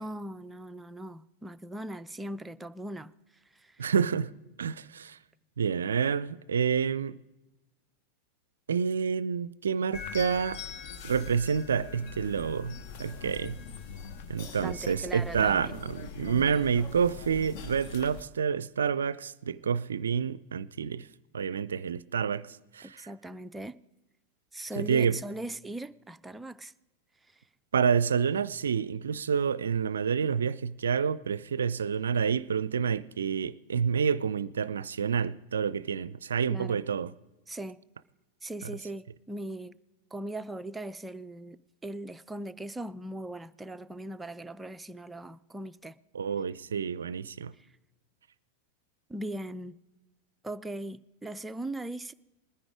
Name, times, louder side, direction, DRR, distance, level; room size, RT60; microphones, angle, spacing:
voice 1, 0.0-3.1 3.5-3.8 14.6-15.7 23.0-23.8 24.5-26.7 27.3-27.4 36.5-36.8 37.5-37.8 38.4-39.8 40.1-46.0 47.6-47.7 49.1-49.8 50.4-52.1, right 1 dB, 10° right, 0.4 m, -39 dB
voice 2, 3.8-4.3 4.6-5.2 5.6-7.2 8.7-10.6 11.0-13.6 14.3-21.1 21.3-22.5 22.7-23.1 24.8-25.2 27.7-37.1 46.1-47.5, right 7 dB, 70° right, 0.4 m, -28 dB
sound 1, 9.9-18.2, left 6 dB, 45° left, 1.1 m, -42 dB
20.5 x 10.0 x 4.9 m
figure-of-eight pair, 90°, 0 cm